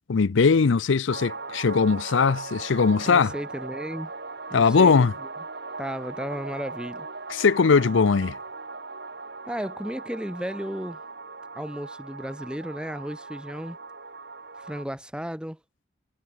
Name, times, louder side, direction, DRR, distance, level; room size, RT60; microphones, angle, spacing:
voice 1, 0.1-3.3 4.5-5.1 7.3-8.4, left 5 dB, 70° left, 0.5 m, -20 dB
sound 1, 1.1-14.8, right 3 dB, 55° right, 5.5 m, -39 dB
voice 2, 3.0-4.1 4.5-5.3 5.8-7.1 9.5-11.0 11.5-13.8 14.6-15.6, equal, 5° right, 1.4 m, -34 dB
head